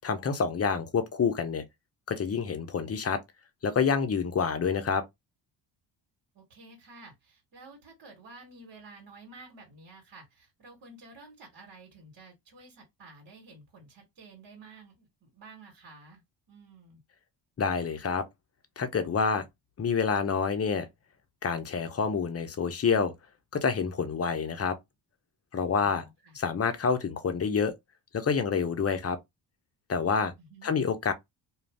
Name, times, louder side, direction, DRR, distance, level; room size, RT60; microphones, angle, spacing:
voice 1, 0.0-1.6 2.1-3.2 3.6-5.0 17.6-18.2 18.8-19.4 19.8-20.9 21.4-23.1 23.5-24.8 25.5-26.0 26.3-27.7 28.1-29.2 29.9-30.3 30.6-31.1, left 6 dB, 30° left, 0.7 m, -27 dB
voice 2, 6.3-16.2 16.5-17.0 25.7-26.4 30.4-30.7, right 3 dB, 55° right, 1.5 m, -51 dB
2.5 x 2.2 x 3.4 m
supercardioid pair, 65°, 47 cm